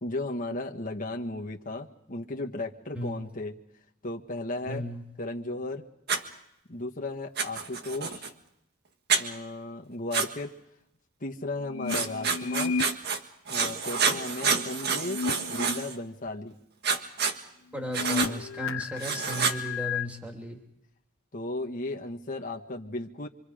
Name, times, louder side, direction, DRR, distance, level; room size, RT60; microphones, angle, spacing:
voice 1, 0.0-3.6 4.0-4.8 5.2-5.8 6.7-8.3 9.1-10.5 11.2-12.8 13.5-15.2 15.5-16.6 21.3-23.3, left 2 dB, 45° left, 1 dB, 1.5 m, -35 dB
voice 2, 4.7-5.0 17.7-20.6, equal, 5° right, 2 dB, 3.0 m, -36 dB
Writing, 6.1-6.2 7.4-8.3 9.1-9.2 10.1-10.3 11.9-13.2 13.5-16.0 16.8-17.4 17.9-18.3 19.0-19.6, right 5 dB, 55° right, 1.6 m, -28 dB
sound 1, 11.6-12.9 15.0-15.9 16.3-16.4 17.8-20.1, left 5 dB, 75° left, 0.9 m, -33 dB
26.5 x 25.5 x 5.0 m, 0.80 s
head